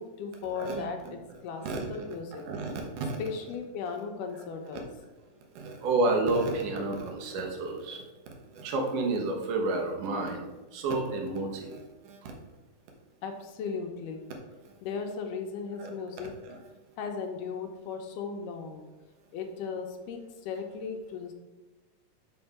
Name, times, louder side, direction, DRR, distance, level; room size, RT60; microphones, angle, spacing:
voice 1, 0.0-1.6 1.9-2.4 3.2-4.9 13.2-14.3 14.8-16.3 17.0-18.9 19.3-21.3, left 5 dB, 75° left, 4 dB, 2.2 m, -36 dB
voice 2, 1.6-2.0 2.5-3.2 5.6-8.0 8.5-12.3 15.8-15.9 16.4-16.6, right 2 dB, 70° right, 1 dB, 2.6 m, -30 dB
5.9 x 5.4 x 5.8 m, 1.1 s
omnidirectional pair, 4.0 m